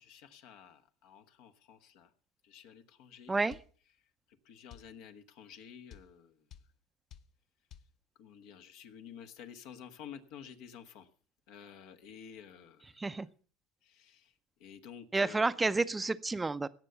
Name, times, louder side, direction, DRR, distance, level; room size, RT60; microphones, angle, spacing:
voice 1, 0.1-2.1 2.4-3.3 4.3-6.5 8.2-11.1 11.5-13.0 13.8-14.3 14.6-15.5, left 8 dB, 70° left, 1.3 m, -51 dB
voice 2, 3.3-3.6 12.9-13.3 15.1-16.7, right 3 dB, 15° right, 0.6 m, -30 dB
sound 1, 3.5-3.7 4.7-4.9 5.9-6.1 6.5-6.7 7.1-7.3 7.7-7.9, left 9 dB, 45° left, 0.6 m, -51 dB
17.0 x 6.8 x 6.8 m
supercardioid pair, 95°, 0 cm